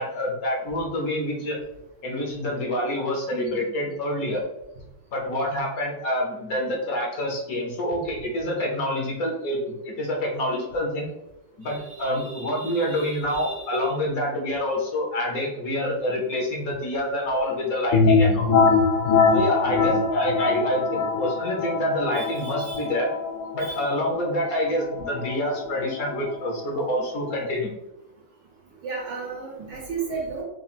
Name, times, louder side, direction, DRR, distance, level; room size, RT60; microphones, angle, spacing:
voice 1, 0.0-1.6 2.0-4.4 5.1-11.1 11.6-18.5 19.3-23.1 23.5-27.8, equal, 60° left, -1 dB, 1.3 m, -27 dB
voice 2, 11.6-14.0 22.1-22.9 23.6-23.8 28.8-30.4, right 4 dB, 75° right, -4 dB, 2.1 m, -35 dB
sound 1, 17.9-27.5, left 4 dB, 75° left, 0.7 m, -23 dB
4.8 x 2.2 x 4.2 m, 0.89 s
omnidirectional pair, 1.9 m